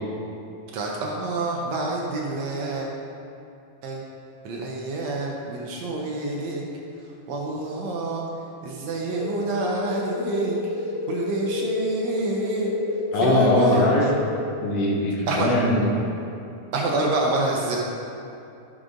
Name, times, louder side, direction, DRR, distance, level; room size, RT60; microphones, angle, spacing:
voice 1, 0.7-2.9 3.8-4.0 4.5-6.6 7.3-8.2 8.6-10.6 11.1-12.7 13.2-13.9 15.3-15.5 16.7-17.8, right 2 dB, 65° right, -2 dB, 2.0 m, -27 dB
sound 1, 9.2-14.2, left 3 dB, 60° left, 2.2 m, -30 dB
voice 2, 13.1-14.2 14.6-15.9, left 1 dB, 75° left, -3 dB, 2.9 m, -21 dB
12.5 x 6.5 x 3.7 m, 2.6 s
omnidirectional pair, 3.6 m